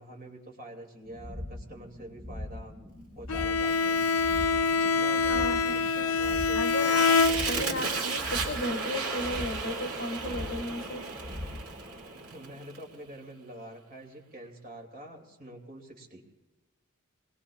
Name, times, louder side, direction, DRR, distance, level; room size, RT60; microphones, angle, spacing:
voice 1, 0.0-4.0 4.8-7.0 12.1-16.2, right 1 dB, 40° right, 1 dB, 2.6 m, -46 dB
sound 1, 1.0-12.8, left 1 dB, 20° right, 1.4 m, -42 dB
Bowed string instrument, 3.3-7.9, left 4 dB, 85° left, 0.5 m, -26 dB
Fire, 3.6-12.8, right 4 dB, 80° right, 2.7 m, -36 dB
voice 2, 5.2-5.8 6.5-7.1 7.5-11.0, left 1 dB, 55° left, 3 dB, 2.1 m, -34 dB
25.0 x 21.5 x 2.4 m, 1.2 s
head